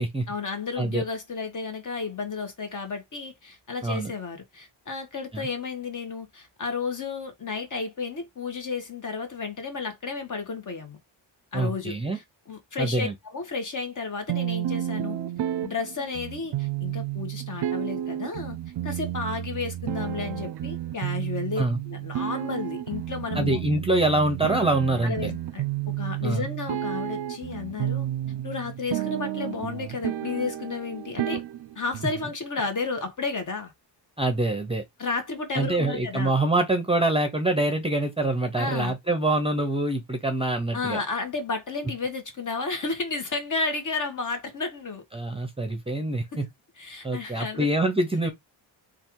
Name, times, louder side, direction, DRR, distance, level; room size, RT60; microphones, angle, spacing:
voice 1, 0.3-11.0 11.5-15.2 15.6-18.6 18.8-23.6 25.0-28.1 28.4-31.4 31.7-33.7 35.0-36.3 38.6-38.9 40.7-45.0 46.3-46.4 46.8-47.7, left 4 dB, 40° left, 1.3 m, -32 dB
voice 2, 3.8-4.1 5.3-5.4 11.5-12.2 12.8-13.1 21.6-21.8 23.4-25.3 26.2-26.5 34.2-34.8 35.5-41.0 45.1-46.5 47.0-48.3, right 2 dB, 10° right, 0.7 m, -25 dB
sound 1, 14.3-32.3, right 12 dB, 55° right, 0.5 m, -31 dB
3.4 x 2.5 x 4.5 m
cardioid pair, 115°, 47 cm